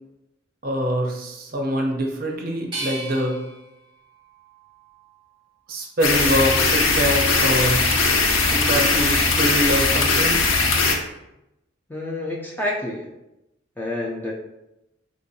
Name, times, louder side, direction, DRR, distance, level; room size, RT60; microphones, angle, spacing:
voice 1, 0.6-3.4 5.7-7.9 8.5-10.4, equal, 45° right, 1 dB, 0.5 m, -24 dB
sound 1, 2.7-5.6 6.2-7.0, right 2 dB, 25° right, 0.8 m, -38 dB
sound 2, 6.0-10.9, left 3 dB, 85° left, 0.5 m, -19 dB
voice 2, 11.9-13.1 13.8-14.3, left 1 dB, 10° left, -3 dB, 0.3 m, -28 dB
3.7 x 2.5 x 2.6 m, 0.90 s
head